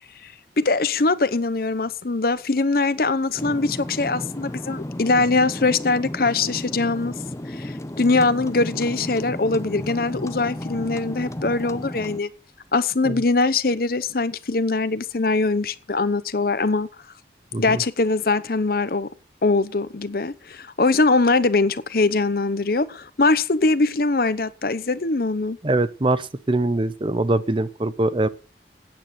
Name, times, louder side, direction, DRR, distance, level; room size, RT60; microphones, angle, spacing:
voice 1, 0.6-7.1 7.5-12.3 12.7-16.9 17.6-19.1 19.4-25.6, left 3 dB, 55° left, 0.8 m, -22 dB
sound 1, 3.4-12.2, left 1 dB, 15° left, 0.5 m, -33 dB
voice 2, 25.6-28.3, right 2 dB, 30° right, 0.6 m, -23 dB
9.1 x 8.1 x 7.6 m
head